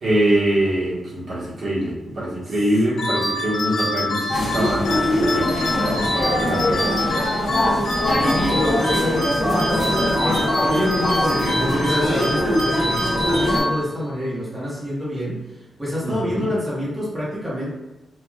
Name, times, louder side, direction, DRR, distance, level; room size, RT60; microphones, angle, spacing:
voice 1, 0.0-6.8 16.0-16.5, right 1 dB, 55° right, -8 dB, 1.1 m, -23 dB
sound 1, 3.0-14.2, left 1 dB, 85° left, 0.9 m, -25 dB
sound 2, 4.3-13.6, left 1 dB, 60° left, 1.0 m, -23 dB
voice 2, 8.2-17.7, equal, 5° right, -9 dB, 0.8 m, -26 dB
3.2 x 2.3 x 2.3 m, 1.1 s
wide cardioid pair, 150°, 0 cm